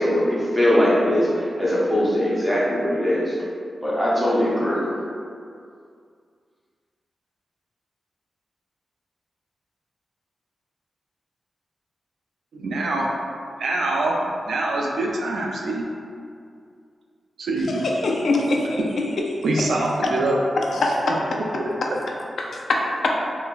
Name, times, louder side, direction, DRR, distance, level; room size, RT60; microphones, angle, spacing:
voice 1, 0.0-3.4 3.8-4.9, left 1 dB, ahead, -8 dB, 0.6 m, -21 dB
voice 2, 12.5-13.1 13.6-14.2 14.5-15.9 17.4-17.8 19.4-20.4 21.3-21.4, right 2 dB, 85° right, -1 dB, 0.4 m, -24 dB
voice 3, 18.0-18.8 20.6-21.2 21.8-21.9 22.4-23.1, left 2 dB, 65° left, -1 dB, 0.3 m, -23 dB
3.7 x 2.1 x 2.3 m, 2.3 s
wide cardioid pair, 180°, 0 cm